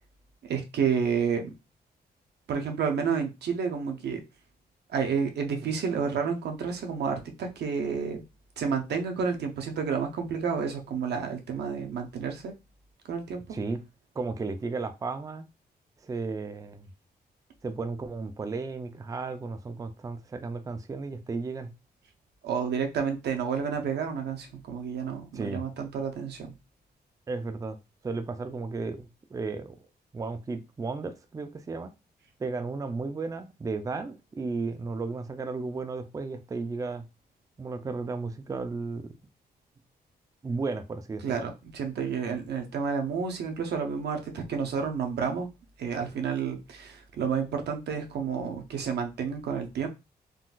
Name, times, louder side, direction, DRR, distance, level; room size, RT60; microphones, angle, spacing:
voice 1, 0.4-1.5 2.5-4.2 4.9-8.2 8.6-12.5 13.1-13.6 22.4-26.5 41.2-45.5 45.8-49.9, right 6 dB, 80° right, 4 dB, 0.7 m, -30 dB
voice 2, 14.2-15.4 16.0-16.9 17.6-21.7 25.3-25.6 27.3-27.8 28.0-29.8 30.1-31.9 32.4-37.0 37.6-39.1 40.4-41.4, right 3 dB, 20° right, 8 dB, 0.4 m, -34 dB
3.8 x 2.4 x 2.3 m, 0.26 s
cardioid pair, 95°, 17 cm